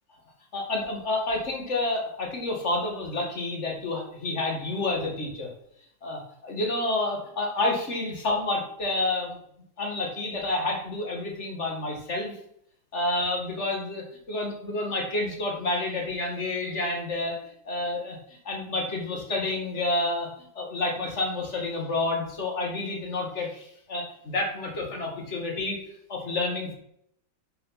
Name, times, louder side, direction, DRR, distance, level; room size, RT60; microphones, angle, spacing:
voice 1, 0.5-5.5 6.0-9.4 9.8-12.3 12.9-17.4 17.7-18.2 18.4-20.3 20.6-25.8 26.1-26.7, left 2 dB, 35° left, 1 dB, 2.5 m, -29 dB
11.0 x 5.9 x 5.9 m, 0.71 s
omnidirectional pair, 2.0 m